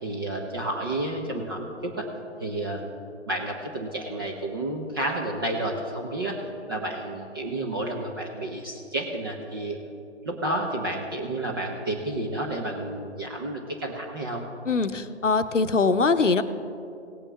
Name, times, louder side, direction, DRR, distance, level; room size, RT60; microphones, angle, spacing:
voice 1, 0.0-2.1 2.4-2.8 3.3-6.3 6.7-9.8 10.2-14.5, right 1 dB, 20° right, -1 dB, 0.6 m, -30 dB
voice 2, 14.7-16.4, left 4 dB, 85° left, 11 dB, 0.7 m, -22 dB
18.0 x 8.8 x 3.3 m, 2.7 s
figure-of-eight pair, 135°, 36 cm